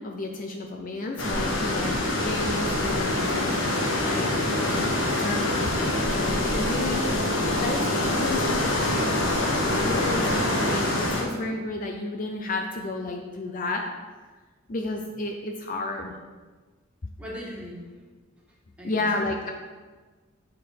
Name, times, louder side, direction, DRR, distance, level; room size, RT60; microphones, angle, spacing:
voice 1, 0.0-4.3 5.1-9.1 9.7-13.9 14.7-16.1 18.8-19.5, left 2 dB, 45° left, 2 dB, 0.6 m, -32 dB
sound 1, 1.2-11.2, left 1 dB, 75° left, 1.4 m, -25 dB
voice 2, 4.3-4.7 17.2-17.9 18.8-19.4, equal, 5° right, -6 dB, 1.8 m, -40 dB
7.7 x 4.5 x 5.2 m, 1.4 s
head